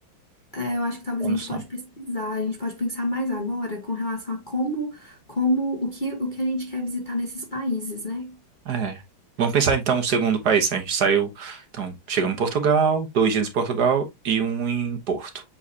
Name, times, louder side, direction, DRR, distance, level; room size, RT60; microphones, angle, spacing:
voice 1, 0.5-8.4, left 1 dB, 30° left, 1.1 m, -28 dB
voice 2, 1.2-1.6 8.7-9.0 9.4-15.4, right 6 dB, 55° right, 1.5 m, -23 dB
7.4 x 4.7 x 2.7 m
omnidirectional pair, 2.3 m